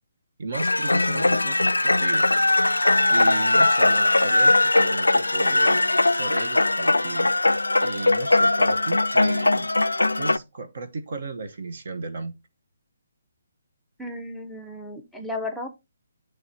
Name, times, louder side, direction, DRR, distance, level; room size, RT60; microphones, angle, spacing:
voice 1, 0.4-2.4 3.1-5.8 6.1-7.3 7.8-9.7 10.1-12.3, right 3 dB, 55° right, 1.0 m, -34 dB
sound 1, 0.5-10.4, left 2 dB, 85° left, 0.3 m, -20 dB
voice 2, 14.0-15.7, left 2 dB, ahead, 0.7 m, -34 dB
9.3 x 3.4 x 4.0 m
figure-of-eight pair, 140°, 0 cm